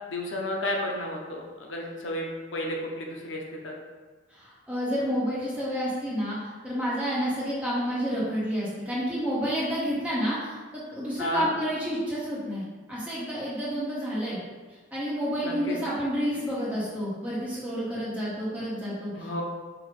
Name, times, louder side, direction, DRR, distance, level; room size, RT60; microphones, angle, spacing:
voice 1, 0.1-2.3 2.5-3.7 11.2-11.5 15.4-15.8 19.2-19.4, left 1 dB, 70° left, 0 dB, 0.6 m, -32 dB
voice 2, 4.3-10.6 10.9-12.6 12.9-14.4 14.9-19.4, equal, 5° right, -9 dB, 1.3 m, -29 dB
5.8 x 2.5 x 3.3 m, 1.4 s
head